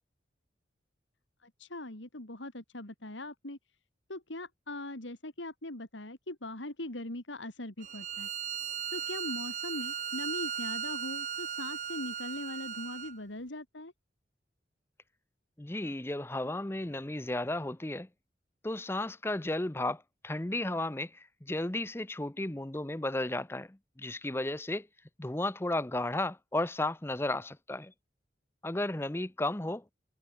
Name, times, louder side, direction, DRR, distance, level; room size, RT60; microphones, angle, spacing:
voice 1, 1.4-3.6 4.1-8.3 8.9-13.9, left 1 dB, 90° left, 3.8 m, -41 dB
Bowed string instrument, 7.8-13.2, right 8 dB, 40° right, 1.3 m, -37 dB
voice 2, 15.6-18.1 18.6-24.9 25.2-27.9 28.6-29.8, left 1 dB, 15° left, 0.6 m, -34 dB
head